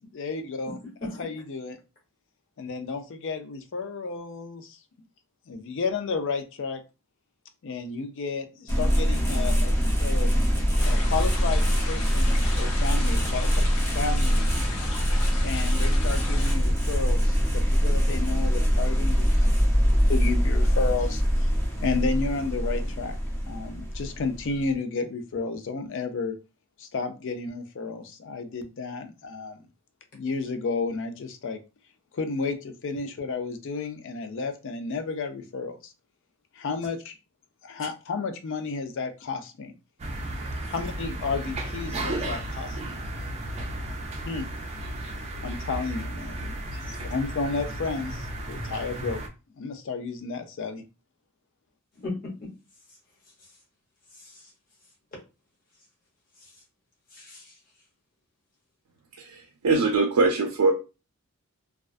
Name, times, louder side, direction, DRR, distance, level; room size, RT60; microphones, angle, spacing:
voice 1, 0.1-0.8 1.2-1.8 2.6-4.8 5.5-6.8 7.6-10.3 10.8-13.7 13.9-14.6 15.4-19.5 20.1-21.5 21.8-23.2 23.5-26.4 26.8-29.6 30.1-31.6 32.1-35.9 36.5-37.2 37.6-39.7 40.7-43.0 44.3-44.5 45.4-46.5 47.1-49.2 49.6-50.8, left 4 dB, 55° left, 8 dB, 0.4 m, -32 dB
sound 1, 8.7-24.7, equal, 10° left, 0.6 m, -23 dB
sound 2, 10.8-16.6, left 3 dB, 85° left, 0.7 m, -37 dB
sound 3, 40.0-49.3, right 1 dB, 30° right, 0.4 m, -34 dB
voice 2, 46.7-47.0 51.9-52.5 54.2-54.5 56.4-56.5 57.1-57.6, left 2 dB, 40° left, -2 dB, 1.0 m, -38 dB
voice 3, 59.6-60.7, right 3 dB, 85° right, 3 dB, 0.4 m, -22 dB
2.3 x 2.2 x 2.4 m, 0.30 s
head